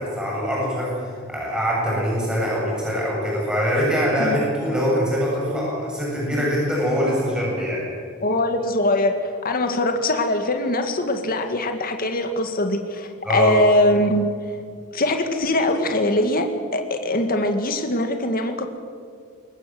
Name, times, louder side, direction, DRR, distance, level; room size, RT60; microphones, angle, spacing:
voice 1, 0.0-7.8 13.2-13.6, equal, 5° right, -5 dB, 8.0 m, -23 dB
voice 2, 8.2-14.3 14.9-18.7, left 1 dB, 45° left, 6 dB, 2.0 m, -22 dB
22.5 x 19.5 x 7.7 m, 2.2 s
head